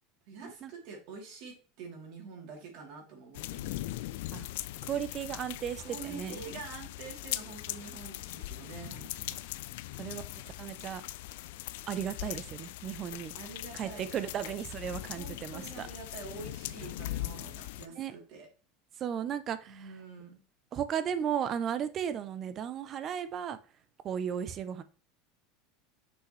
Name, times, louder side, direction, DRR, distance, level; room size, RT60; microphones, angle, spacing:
voice 1, 0.3-3.9 5.8-9.4 13.3-14.1 15.2-18.5 19.7-20.4, right 5 dB, 60° right, 3.2 m, -46 dB
sound 1, 3.3-17.9, left 16 dB, 75° left, 0.4 m, -40 dB
voice 2, 4.8-6.4 10.0-10.2 10.6-11.0 11.9-13.3 13.7-15.9 18.0-18.1 19.0-19.8 20.7-23.6 24.0-24.8, right 9 dB, 35° right, 0.6 m, -35 dB
6.3 x 5.6 x 3.2 m
supercardioid pair, 145°, 0 cm